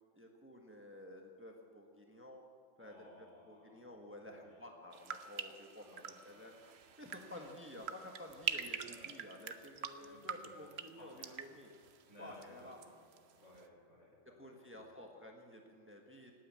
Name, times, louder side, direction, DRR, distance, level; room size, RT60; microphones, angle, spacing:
voice 1, 0.1-2.4 2.8-6.6 7.0-11.7 12.2-12.8 14.4-16.3, left 1 dB, 10° right, 1 dB, 1.4 m, -52 dB
voice 2, 2.8-3.8 4.2-4.7 5.8-6.4 7.2-7.4 8.8-9.3 10.0-10.7 11.0-11.4 12.1-13.0 13.3-15.0, left 1 dB, 70° left, -4 dB, 6.1 m, -60 dB
sound 1, 4.9-12.9 13.1-13.7, right 7 dB, 60° right, 1.0 m, -45 dB
18.0 x 9.3 x 8.5 m, 2.3 s
omnidirectional pair, 1.3 m